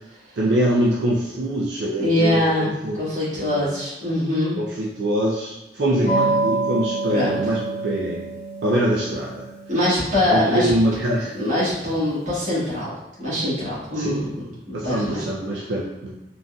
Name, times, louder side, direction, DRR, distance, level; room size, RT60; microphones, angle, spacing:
voice 1, 0.4-3.0 3.3-3.7 4.6-8.3 8.6-9.5 10.3-11.3 14.0-14.3 14.7-16.1, right 1 dB, 75° right, -5 dB, 0.4 m, -24 dB
voice 2, 2.0-4.6 5.8-6.3 7.1-7.3 9.7-10.7 11.3-14.3 14.7-15.3, left 1 dB, 45° right, -10 dB, 1.5 m, -23 dB
sound 1, 6.1-12.3, right 3 dB, 30° left, 0.8 m, -28 dB
3.8 x 2.5 x 2.2 m, 1.0 s
head